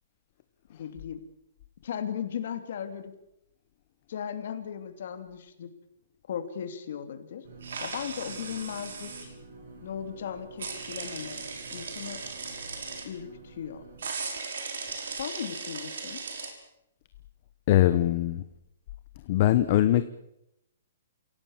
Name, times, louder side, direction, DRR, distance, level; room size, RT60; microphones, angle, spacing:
voice 1, 0.7-1.2 1.8-3.1 4.1-5.7 6.3-7.4 7.8-9.3 9.8-11.4 11.7-12.2 13.0-13.8 15.2-16.2, left 8 dB, 50° left, 8 dB, 2.9 m, -37 dB
sound 1, 7.4-14.1, right 2 dB, 55° right, 7.6 m, -49 dB
sound 2, 7.6-9.3 10.6-13.1 14.0-16.5, right 5 dB, 75° right, 5.2 m, -37 dB
voice 2, 17.7-18.4 19.3-20.1, left 13 dB, 30° left, 12 dB, 0.9 m, -22 dB
28.5 x 17.0 x 7.4 m, 0.83 s
hypercardioid pair, 175°, 0 cm